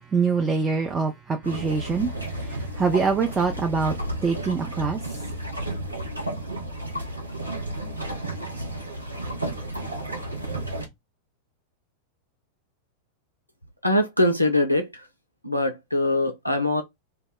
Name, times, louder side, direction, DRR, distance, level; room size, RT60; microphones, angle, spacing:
voice 1, 0.0-3.9 4.2-5.2, right 5 dB, 20° right, 0.4 m, -25 dB
sound 1, 1.4-10.9, right 1 dB, 80° right, 0.6 m, -32 dB
voice 2, 13.8-15.1 15.4-16.8, left 1 dB, 90° left, 0.3 m, -22 dB
2.1 x 2.0 x 3.4 m
figure-of-eight pair, 90°, 0 cm